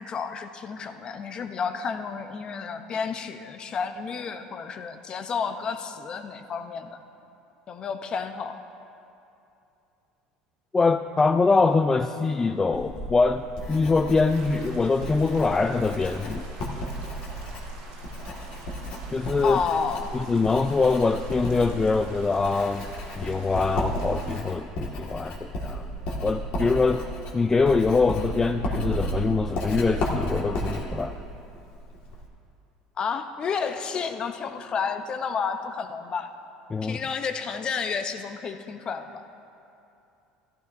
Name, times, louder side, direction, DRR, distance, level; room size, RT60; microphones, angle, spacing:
voice 1, 0.0-7.0 7.7-8.5 19.4-20.1 33.0-36.3 36.8-39.2, left 6 dB, 40° left, 8 dB, 0.7 m, -31 dB
voice 2, 10.7-16.4 19.1-19.6 20.1-22.8 23.2-25.9 26.2-27.1 27.3-31.2 36.7-37.0, left 4 dB, 20° left, 7 dB, 0.3 m, -23 dB
Writing, 12.7-32.3, equal, 60° left, 1.9 m, -33 dB
sound 1, 14.3-24.4, right 3 dB, 80° right, 2.4 m, -48 dB
15.0 x 12.0 x 2.7 m, 2.7 s
supercardioid pair, 95°, 2 cm